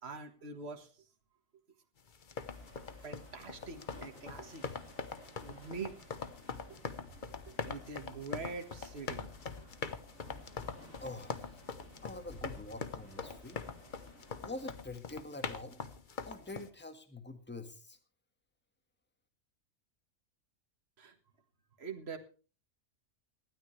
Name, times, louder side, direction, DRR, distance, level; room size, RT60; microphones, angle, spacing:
voice 1, 0.0-0.9 3.0-4.6 5.4-5.9 7.5-9.3 21.0-21.1 21.8-22.2, right 4 dB, 50° right, 5 dB, 1.9 m, -44 dB
sound 1, 2.1-16.7, left 5 dB, 40° left, 1.0 m, -43 dB
sound 2, 2.4-14.7, equal, 80° left, 5.5 m, -56 dB
voice 2, 11.0-11.5 12.0-13.6 14.4-15.8 16.2-18.0, left 2 dB, 10° left, 7 dB, 1.6 m, -45 dB
19.0 x 12.5 x 3.3 m, 0.37 s
omnidirectional pair, 1.4 m